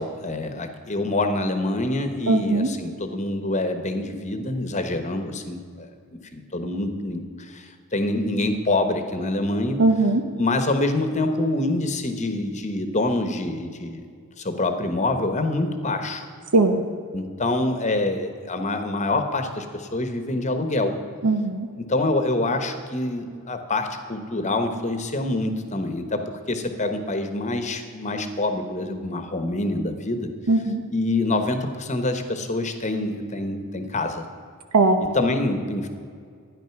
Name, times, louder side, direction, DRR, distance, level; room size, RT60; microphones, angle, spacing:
voice 1, 0.0-5.9 6.3-9.8 10.4-14.1 14.4-16.3 17.1-20.9 21.8-26.2 26.5-30.3 30.9-34.2 35.0-35.9, left 2 dB, 30° left, 8 dB, 1.1 m, -26 dB
voice 2, 2.3-2.7 9.8-10.2 16.5-16.8 21.2-21.7 30.5-30.8 34.7-35.0, right 2 dB, 85° right, 5 dB, 1.1 m, -19 dB
13.0 x 10.0 x 5.9 m, 2.1 s
head